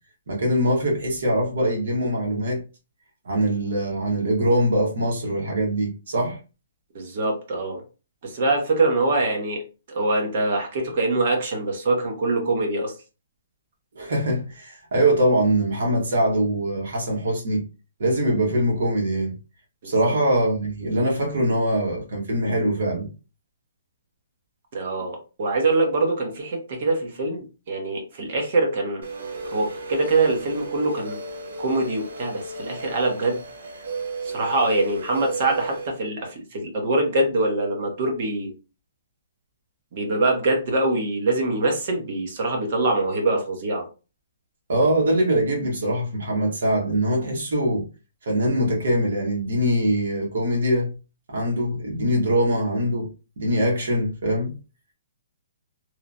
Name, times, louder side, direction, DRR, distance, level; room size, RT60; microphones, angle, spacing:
voice 1, 0.3-2.6 3.2-6.4 13.9-17.6 18.0-19.3 19.8-23.1 44.7-47.9 48.2-50.9 51.3-53.1 53.4-54.5, right 1 dB, 60° right, 1.1 m, -23 dB
voice 2, 6.9-7.8 8.2-9.6 9.9-12.9 19.8-20.2 24.7-29.1 29.5-31.2 31.6-33.4 34.2-38.5 39.9-43.9, right 2 dB, 35° right, 0.7 m, -24 dB
sound 1, 29.0-35.9, right 3 dB, 80° right, 0.9 m, -34 dB
3.0 x 2.0 x 2.5 m
hypercardioid pair, 180°, 0 cm